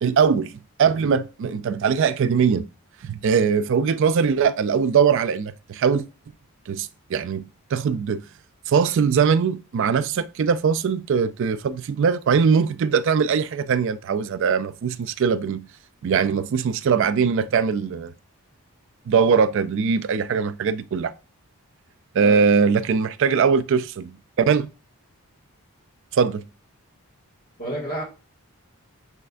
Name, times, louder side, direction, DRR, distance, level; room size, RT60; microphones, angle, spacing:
voice 1, 0.0-0.5 0.8-2.7 3.0-6.1 6.7-8.2 8.7-15.7 16.0-18.1 19.1-21.1 22.1-24.7 26.1-26.4, right 6 dB, 55° right, 0.3 m, -21 dB
voice 2, 22.2-22.7 27.6-28.0, right 1 dB, 40° left, 1.8 m, -31 dB
6.3 x 3.2 x 2.5 m
head